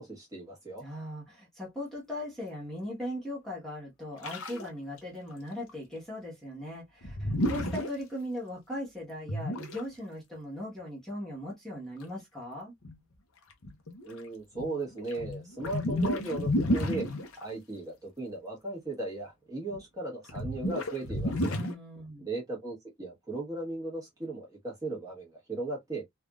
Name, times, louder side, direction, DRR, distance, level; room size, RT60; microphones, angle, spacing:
voice 1, 0.0-0.8 14.0-17.1 17.4-21.5 22.2-26.0, right 2 dB, 15° right, 1.2 m, -37 dB
voice 2, 0.8-12.7 21.5-22.2, left 1 dB, ahead, 1.2 m, -39 dB
sound 1, 4.2-4.7 5.0-5.1 5.3-5.4 5.7-5.8 7.0-7.9 9.3-9.8 12.0-12.1 12.8-13.0 13.5-14.1 14.6-17.4 19.7-19.8 20.3-21.7, left 1 dB, 85° left, 0.8 m, -31 dB
3.3 x 2.5 x 2.3 m
head